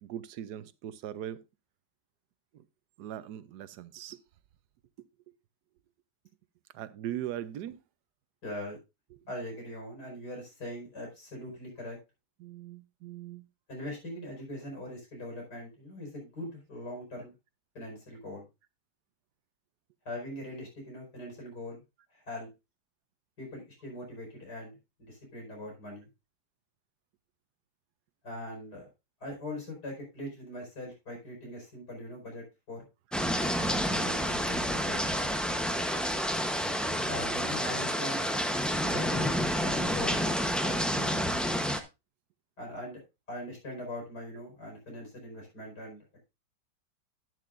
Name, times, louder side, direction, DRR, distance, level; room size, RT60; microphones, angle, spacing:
voice 1, 0.0-1.4 3.0-4.2 6.7-7.8 12.4-13.4, right 11 dB, 80° right, 1.2 m, -40 dB
voice 2, 8.4-8.8 9.3-12.0 13.7-17.3 17.8-18.5 20.1-21.8 22.1-22.5 23.4-26.1 28.2-28.9 29.2-32.9 33.7-35.2 37.0-38.3 38.8-40.3 40.6-41.3 42.6-43.0 43.3-46.1, left 1 dB, 75° left, 5.5 m, -41 dB
sound 1, 33.1-41.8, equal, ahead, 0.4 m, -29 dB
11.0 x 10.0 x 2.5 m
omnidirectional pair, 1.7 m